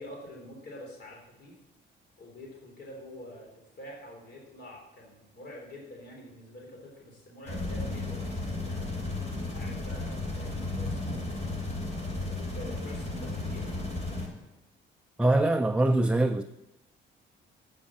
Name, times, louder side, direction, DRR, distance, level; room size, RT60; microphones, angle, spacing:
voice 1, 0.0-1.6 2.2-3.5 3.8-9.0 9.5-11.4 12.1-13.6, left 1 dB, 55° left, 3.8 m, -46 dB
sound 1, 7.5-14.3, left 2 dB, 35° left, 3.2 m, -34 dB
voice 2, 15.2-16.4, right 2 dB, 5° right, 0.4 m, -23 dB
8.8 x 6.3 x 7.2 m
cardioid pair, 90°, 20 cm